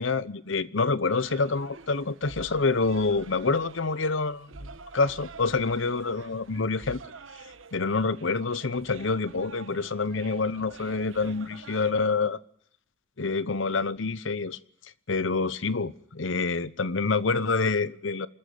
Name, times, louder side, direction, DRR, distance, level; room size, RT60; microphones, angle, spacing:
voice 1, 0.0-7.0 7.7-12.4 13.2-14.6 15.1-18.3, left 4 dB, 75° left, 0.9 m, -27 dB
sound 1, 1.1-11.9, right 4 dB, 90° right, 1.3 m, -47 dB
26.5 x 14.0 x 9.5 m
head